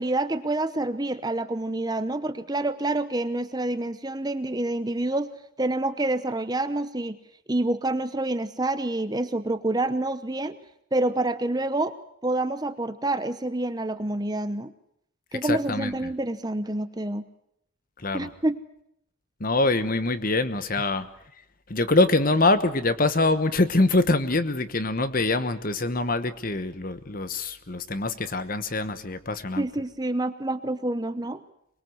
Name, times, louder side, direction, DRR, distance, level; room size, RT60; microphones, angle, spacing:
voice 1, 0.0-5.3 5.6-7.2 7.5-10.6 10.9-11.9 12.2-14.7 15.3-17.3 18.1-18.6 29.6-31.4, right 2 dB, 20° right, 12 dB, 0.9 m, -27 dB
voice 2, 15.5-15.9 18.0-18.3 19.4-21.0 21.7-29.6, left 2 dB, 40° left, 12 dB, 1.2 m, -24 dB
23.5 x 21.5 x 7.9 m, 0.75 s
head